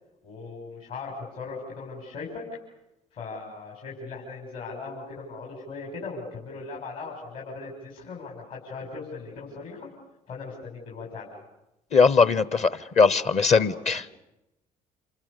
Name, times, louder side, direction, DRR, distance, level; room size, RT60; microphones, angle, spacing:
voice 1, 0.2-2.4 3.1-9.9 10.3-11.3 13.5-13.7, left 4 dB, 60° left, -3 dB, 6.9 m, -38 dB
voice 2, 11.9-12.7 13.0-14.0, left 5 dB, 40° left, 17 dB, 1.0 m, -19 dB
28.0 x 27.0 x 6.8 m, 0.94 s
hypercardioid pair, 60°, 17 cm